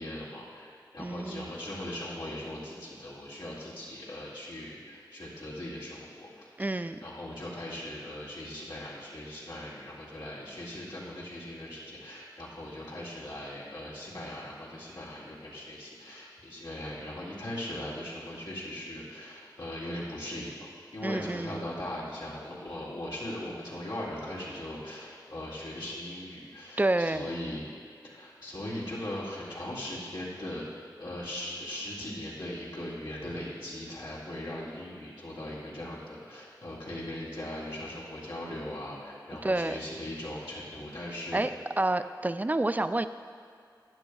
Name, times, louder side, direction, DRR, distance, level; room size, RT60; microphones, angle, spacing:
voice 1, 0.0-27.6 28.0-41.4, left 1 dB, 85° left, -7 dB, 2.2 m, -39 dB
voice 2, 1.0-1.5 6.6-7.0 21.0-21.7 26.8-27.3 39.4-39.8 41.3-41.5 41.8-43.1, right 2 dB, 20° right, 11 dB, 0.3 m, -29 dB
11.5 x 9.0 x 2.4 m, 2.4 s
wide cardioid pair, 45°, 8 cm